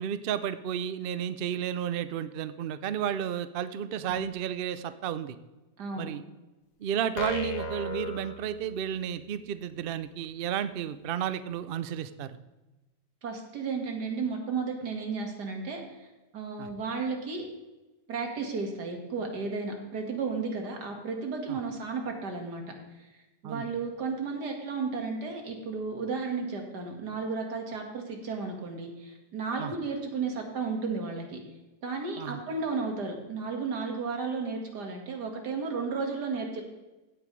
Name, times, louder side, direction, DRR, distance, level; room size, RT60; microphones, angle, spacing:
voice 1, 0.0-5.4 6.0-6.2 6.8-12.4 16.6-16.7 21.5-21.6 23.4-23.7 29.6-29.7 32.2-32.4, right 9 dB, 70° right, 13 dB, 0.5 m, -32 dB
voice 2, 5.8-6.1 13.2-16.1 16.3-17.4 18.1-22.6 23.0-23.1 23.4-31.4 31.8-36.6, right 4 dB, 90° right, 2 dB, 2.4 m, -33 dB
sound 1, 7.2-9.1, left 2 dB, 85° left, 1.6 m, -35 dB
16.0 x 8.7 x 3.2 m, 1.1 s
omnidirectional pair, 1.7 m